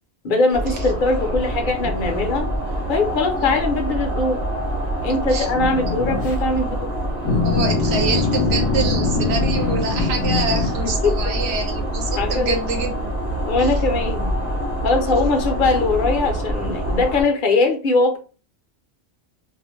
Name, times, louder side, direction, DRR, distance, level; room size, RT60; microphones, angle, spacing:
voice 1, 0.2-2.5 2.9-4.4 5.0-6.9 10.8-11.1 12.2-12.6 13.4-14.3 14.8-18.2, left 3 dB, 55° left, 3 dB, 0.7 m, -21 dB
sound 1, 0.5-17.2, right 1 dB, 45° right, 0.8 m, -25 dB
sound 2, 5.5-6.3 7.2-10.8, left 4 dB, 80° left, 0.9 m, -22 dB
voice 2, 7.4-13.1 13.6-13.8, right 4 dB, 80° right, 3 dB, 1.0 m, -26 dB
2.4 x 2.1 x 3.0 m, 0.37 s
omnidirectional pair, 1.1 m